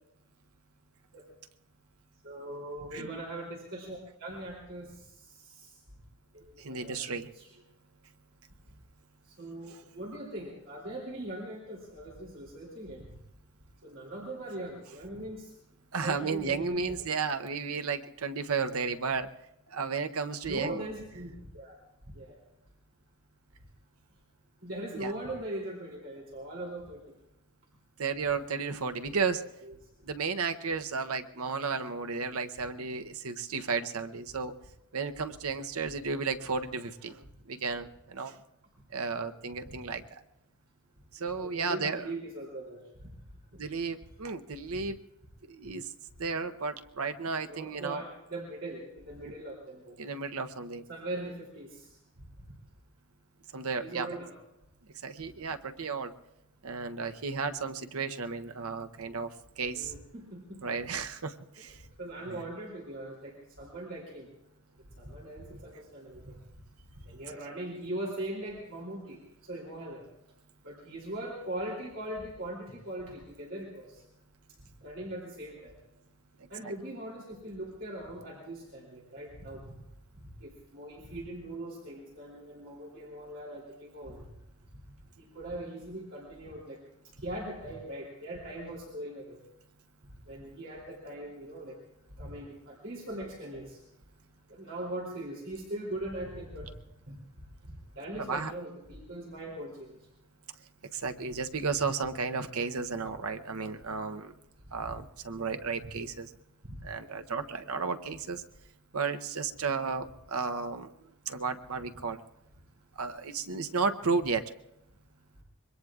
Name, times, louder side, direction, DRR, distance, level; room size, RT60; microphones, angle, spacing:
voice 1, 2.2-4.9 5.3-5.7 6.3-7.5 9.4-13.0 13.8-15.5 16.0-16.9 20.5-21.8 22.1-22.3 24.6-27.0 28.8-29.2 29.6-29.7 41.4-42.8 47.5-50.0 50.9-51.9 53.7-54.3 59.7-60.6 62.0-64.3 65.0-66.4 67.1-70.0 70.6-73.9 74.8-75.7 76.5-79.7 80.4-84.3 85.2-86.8 87.2-89.4 90.3-91.8 92.2-93.8 94.5-96.7 97.1-97.2 98.0-100.0 106.6-106.8, right 1 dB, 60° right, -4 dB, 3.1 m, -40 dB
voice 2, 6.6-7.3 9.7-9.8 15.9-19.3 19.7-20.8 24.9-25.1 28.0-29.4 30.0-34.5 34.9-38.4 38.9-40.2 41.1-42.1 43.6-45.0 45.5-45.9 46.2-48.0 49.2-49.3 50.0-50.8 53.5-54.1 55.0-56.1 56.6-59.9 60.6-61.8 62.3-62.4 76.6-76.7 98.3-98.5 100.9-104.3 104.7-106.3 106.8-108.4 108.9-110.9 111.3-112.2 113.0-114.4, right 5 dB, 80° right, 7 dB, 0.8 m, -33 dB
25.5 x 22.5 x 2.4 m, 0.89 s
head